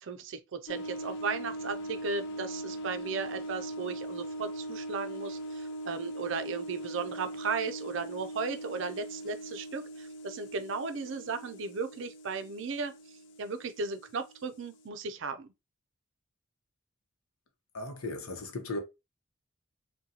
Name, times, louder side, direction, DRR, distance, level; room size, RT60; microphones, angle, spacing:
voice 1, 0.0-12.9 13.4-15.5, right 4 dB, 60° right, 0.4 m, -36 dB
sound 1, 0.7-14.9, right 1 dB, 55° left, 0.5 m, -41 dB
voice 2, 17.7-18.8, left 2 dB, 85° left, 0.8 m, -36 dB
3.9 x 2.2 x 2.8 m
head